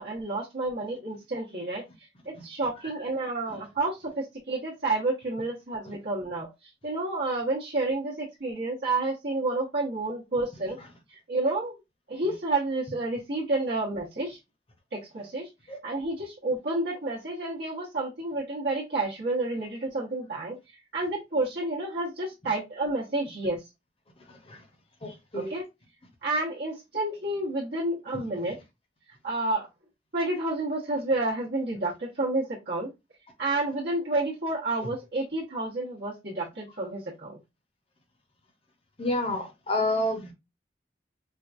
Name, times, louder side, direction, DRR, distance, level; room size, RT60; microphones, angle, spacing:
voice 1, 0.0-1.8 2.2-10.8 11.1-11.8 12.1-14.4 14.9-15.5 15.8-23.6 25.3-25.6 26.2-28.6 29.2-29.7 30.1-32.9 33.4-37.4, right 2 dB, 65° right, 0.9 m, -30 dB
voice 2, 25.0-25.6 28.1-28.2 34.8-34.9 39.0-40.3, left 1 dB, 30° left, 0.7 m, -29 dB
4.4 x 2.3 x 2.5 m
head